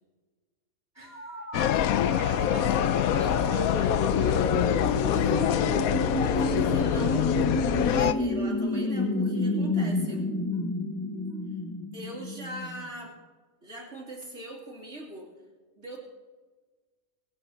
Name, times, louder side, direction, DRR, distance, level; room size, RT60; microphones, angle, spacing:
voice 1, 0.9-5.0, right 1 dB, 10° right, -1 dB, 3.2 m, -45 dB
sound 1, 1.0-12.9, left 1 dB, 15° left, 0.8 m, -30 dB
sound 2, 1.5-8.1, left 11 dB, 85° left, 1.1 m, -25 dB
voice 2, 3.1-3.5 5.1-5.7 6.2-10.2 11.9-13.2 13.6-15.3 15.8-16.0, right 1 dB, 55° right, -2 dB, 3.2 m, -41 dB
24.0 x 8.9 x 4.4 m, 1.3 s
omnidirectional pair, 1.4 m